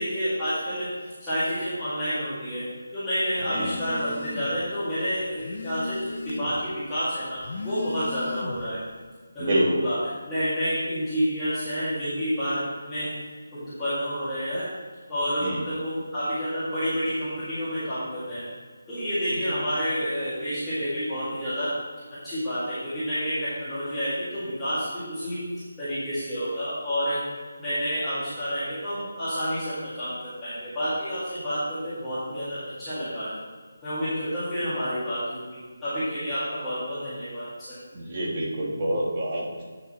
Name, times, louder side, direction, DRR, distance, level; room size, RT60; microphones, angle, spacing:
voice 1, 0.0-6.0 6.2-8.8 9.3-10.0 10.2-13.1 13.5-14.7 15.1-18.5 18.9-21.7 22.2-27.2 27.6-33.3 33.8-37.8, equal, 5° left, -17 dB, 1.9 m, -29 dB
Telephone, 3.4-4.6 5.0-6.7 7.3-8.8, left 4 dB, 35° left, 0.6 m, -37 dB
voice 2, 9.4-9.8 15.4-15.6 37.9-39.7, right 1 dB, 25° right, -2 dB, 1.3 m, -27 dB
8.2 x 5.9 x 4.2 m, 1.5 s
figure-of-eight pair, 175°, 0 cm